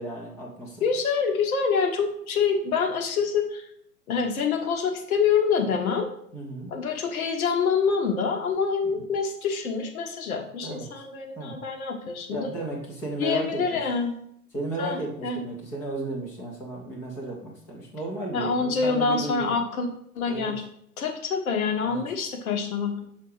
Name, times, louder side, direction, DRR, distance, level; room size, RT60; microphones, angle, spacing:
voice 1, 0.0-0.8 6.3-6.7 8.8-9.0 10.6-10.9 11.4-11.6 12.3-13.8 14.5-19.5 20.3-20.5 21.8-22.0, right 2 dB, 5° left, -1 dB, 0.3 m, -34 dB
voice 2, 0.8-3.7 4.1-6.1 6.7-12.5 13.2-14.2 14.8-15.4 18.3-19.9 20.1-20.6 21.0-23.0, left 5 dB, 60° left, 4 dB, 1.5 m, -26 dB
5.8 x 4.2 x 4.9 m, 0.69 s
figure-of-eight pair, 110°, 47 cm